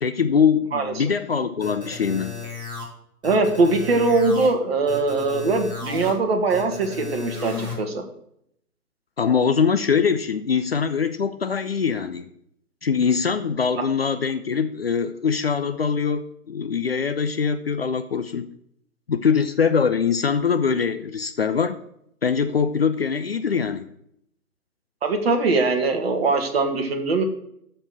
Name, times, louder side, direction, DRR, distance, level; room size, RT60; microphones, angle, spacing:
voice 1, 0.0-2.4 9.2-12.3 12.8-18.5 19.1-21.8 22.2-23.9, left 6 dB, 40° left, 9 dB, 0.6 m, -23 dB
voice 2, 0.7-1.1 3.2-8.0 25.0-27.2, right 3 dB, 40° right, 5 dB, 1.8 m, -21 dB
sound 1, 1.6-2.8 3.2-4.5 4.9-6.1 6.5-7.7, left 4 dB, 10° right, 2.7 m, -34 dB
13.0 x 4.4 x 7.5 m, 0.73 s
figure-of-eight pair, 140°, 46 cm